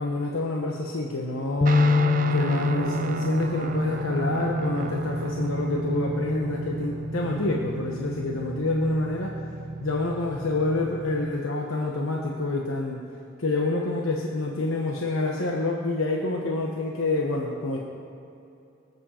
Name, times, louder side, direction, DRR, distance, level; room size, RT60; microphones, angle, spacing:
voice 1, 0.0-1.8 2.3-9.3 9.8-13.0 13.4-17.8, left 2 dB, 90° left, 0 dB, 1.1 m, -27 dB
sound 1, 1.6-7.9, left 4 dB, 25° left, 0.4 m, -28 dB
Guitar, 1.7-11.4, right 3 dB, 40° right, 0.6 m, -32 dB
24.0 x 8.2 x 4.4 m, 2.7 s
head